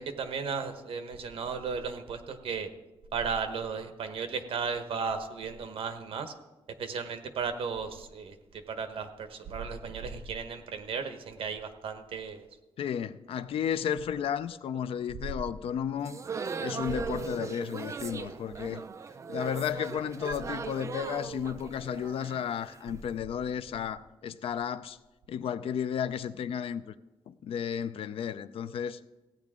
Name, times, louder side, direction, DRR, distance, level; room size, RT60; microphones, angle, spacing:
voice 1, 0.0-2.7 3.1-6.3 6.8-8.3 8.7-12.5, right 5 dB, 75° right, 1.0 m, -35 dB
voice 2, 12.8-16.2 16.6-18.8 19.3-25.0 25.3-26.9 27.3-29.0, left 8 dB, 80° left, 0.5 m, -33 dB
sound 1, 16.0-23.0, right 5 dB, 30° right, 0.4 m, -38 dB
16.0 x 9.4 x 3.7 m
wide cardioid pair, 180°, 10 cm